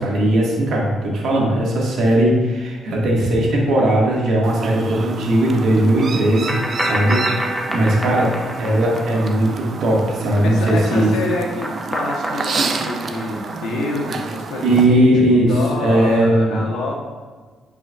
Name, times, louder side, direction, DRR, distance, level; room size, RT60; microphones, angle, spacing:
voice 1, 0.0-11.1 14.6-16.6, right 1 dB, 70° right, -3 dB, 2.0 m, -18 dB
Chirp tweet, 4.4-14.8, right 4 dB, 50° right, 0.6 m, -30 dB
sound 1, 6.5-9.9 10.2-14.2, right 1 dB, ahead, 1.0 m, -28 dB
voice 2, 10.4-15.1 15.5-16.9, left 2 dB, 85° left, -1 dB, 1.2 m, -27 dB
9.8 x 4.9 x 2.5 m, 1.4 s
cardioid pair, 90°, 0 cm